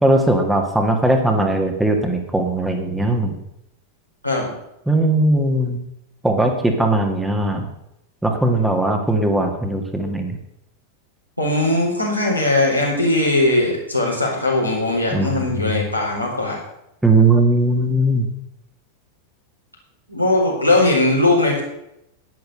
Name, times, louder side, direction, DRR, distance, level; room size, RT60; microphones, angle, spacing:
voice 1, 0.0-3.4 4.9-5.8 6.2-7.7 8.2-10.4 15.1-15.8 17.0-18.3, right 2 dB, 5° right, 3 dB, 2.0 m, -19 dB
voice 2, 11.4-16.6 20.1-21.6, left 2 dB, 90° left, -4 dB, 4.6 m, -19 dB
11.0 x 10.5 x 6.4 m, 0.81 s
figure-of-eight pair, 90°, 0 cm